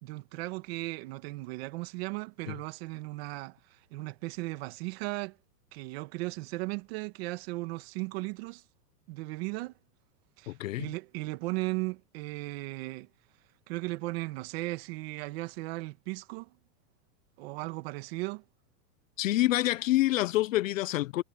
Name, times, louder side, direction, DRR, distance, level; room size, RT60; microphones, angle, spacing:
voice 1, 0.0-3.6 3.9-5.4 5.7-8.6 9.1-9.7 10.4-13.1 13.7-16.5 17.4-18.4, right 22 dB, 40° right, 1.7 m, -36 dB
voice 2, 10.5-10.9 19.2-21.2, left 16 dB, 55° left, 0.6 m, -27 dB
supercardioid pair, 165°, 49 cm